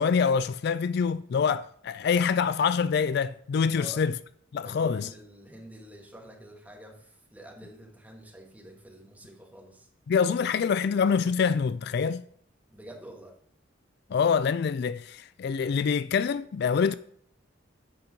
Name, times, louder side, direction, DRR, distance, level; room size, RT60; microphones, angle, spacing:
voice 1, 0.0-4.1 4.5-5.1 10.1-12.2 14.1-16.9, left 6 dB, 55° left, 0.3 m, -25 dB
voice 2, 4.6-9.9 12.7-13.4, right 1 dB, 10° right, 1.5 m, -47 dB
8.6 x 5.2 x 5.8 m
head